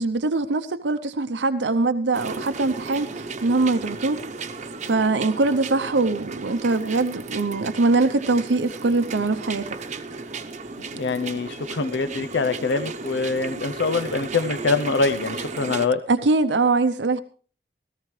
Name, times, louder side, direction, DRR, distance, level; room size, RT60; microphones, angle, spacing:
voice 1, 0.0-4.2 4.8-9.7 16.1-17.2, right 3 dB, 85° right, 9 dB, 0.7 m, -22 dB
sound 1, 2.1-15.9, right 3 dB, 40° right, 0.9 m, -34 dB
voice 2, 10.9-16.0, left 4 dB, 85° left, 9 dB, 0.6 m, -24 dB
17.5 x 14.0 x 3.2 m, 0.39 s
head